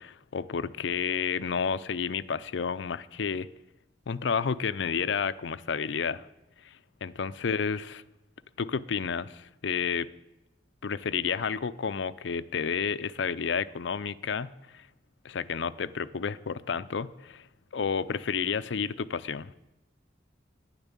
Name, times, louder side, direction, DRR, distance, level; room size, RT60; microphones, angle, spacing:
voice 1, 0.0-3.5 4.1-6.3 6.6-6.8 7.0-8.0 8.6-10.1 10.8-14.8 15.2-17.5 17.7-19.5, left 6 dB, 80° left, 15 dB, 0.5 m, -31 dB
10.5 x 9.8 x 8.2 m, 0.95 s
head